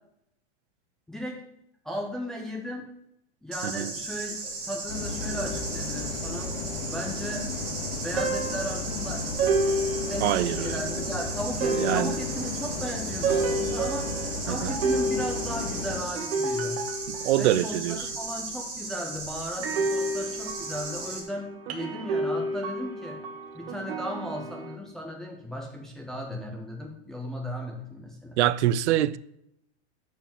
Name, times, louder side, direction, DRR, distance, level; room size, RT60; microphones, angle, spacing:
voice 1, 1.1-1.4 1.8-2.9 3.4-6.5 6.9-7.5 7.9-9.3 9.8-14.1 14.4-16.8 17.4-23.2 23.5-28.4, equal, ahead, 0.3 m, -36 dB
sound 1, 3.5-21.2, right 3 dB, 30° right, 2.1 m, -36 dB
sound 2, 4.9-16.0, left 4 dB, 50° left, 2.1 m, -35 dB
sound 3, 5.3-6.9 8.1-18.2 19.6-24.8, right 2 dB, 60° right, 1.4 m, -31 dB
voice 2, 10.2-10.8 11.8-12.2 14.5-14.7 17.1-18.1 28.4-29.2, right 13 dB, 80° right, 0.6 m, -25 dB
11.5 x 4.6 x 7.2 m
supercardioid pair, 175°, 34 cm